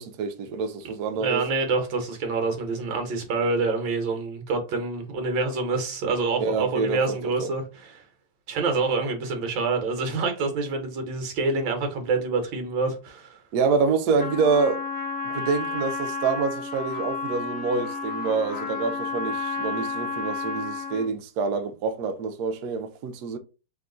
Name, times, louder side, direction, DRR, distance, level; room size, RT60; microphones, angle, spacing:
voice 1, 0.0-1.4 6.4-7.5 13.5-14.8 15.2-23.4, right 4 dB, 85° right, 0.8 m, -26 dB
voice 2, 1.2-8.0 8.5-13.4, right 3 dB, 65° right, 1.6 m, -27 dB
Trumpet, 14.2-21.1, left 4 dB, 5° left, 0.8 m, -31 dB
3.5 x 3.0 x 3.7 m
omnidirectional pair, 2.4 m